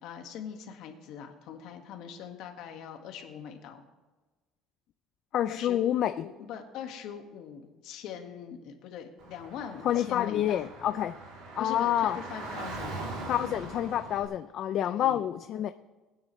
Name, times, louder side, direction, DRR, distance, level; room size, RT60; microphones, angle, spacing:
voice 1, 0.0-3.8 5.5-5.8 6.2-10.7 11.6-13.0 14.8-15.2, left 8 dB, 55° left, 4 dB, 1.6 m, -42 dB
voice 2, 5.3-6.1 9.8-11.1 11.5-12.2 13.3-15.7, left 11 dB, 40° left, 11 dB, 0.3 m, -28 dB
Car / Traffic noise roadway noise, 9.2-14.3, right 2 dB, 75° right, 2.9 m, -41 dB
21.5 x 9.7 x 3.1 m, 1.2 s
cardioid pair, 175°, 0 cm